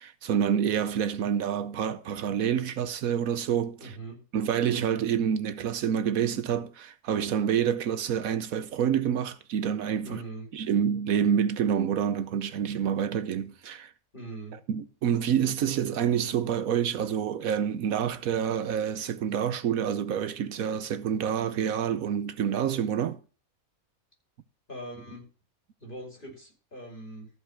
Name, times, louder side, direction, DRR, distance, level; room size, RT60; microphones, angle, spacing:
voice 1, 0.0-3.9 4.3-10.2 10.5-13.9 14.7-23.2, right 8 dB, 75° right, 1.2 m, -27 dB
voice 2, 3.8-4.2 10.0-10.5 14.1-14.6 24.7-25.2 25.8-27.3, right 1 dB, 35° left, 5.7 m, -41 dB
14.0 x 5.5 x 5.8 m
omnidirectional pair, 1.5 m